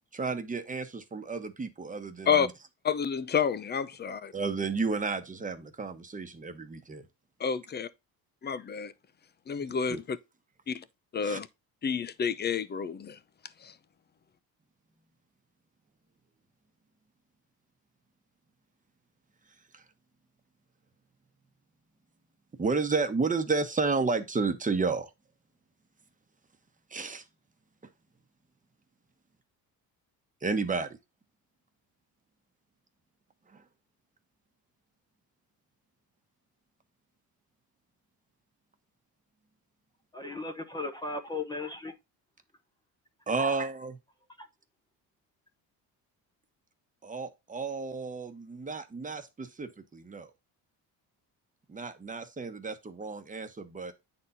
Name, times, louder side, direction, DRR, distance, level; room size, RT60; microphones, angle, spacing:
voice 1, 0.1-2.5 4.3-7.1 9.9-10.0 11.2-11.4 19.7-19.8 22.6-25.1 26.9-27.2 30.4-30.9 33.5-33.6 43.3-44.0 47.0-50.3 51.7-53.9, right 4 dB, 20° right, 1.2 m, -32 dB
voice 2, 2.8-4.3 7.4-7.9 8.4-8.9 9.5-10.2 10.7-10.8 11.1-11.5 11.8-13.2 13.6-13.7, left 7 dB, 25° left, 0.7 m, -29 dB
voice 3, 40.1-41.9 43.4-43.6, left 3 dB, 10° left, 1.0 m, -36 dB
9.3 x 4.3 x 4.1 m
cardioid pair, 125°, 38 cm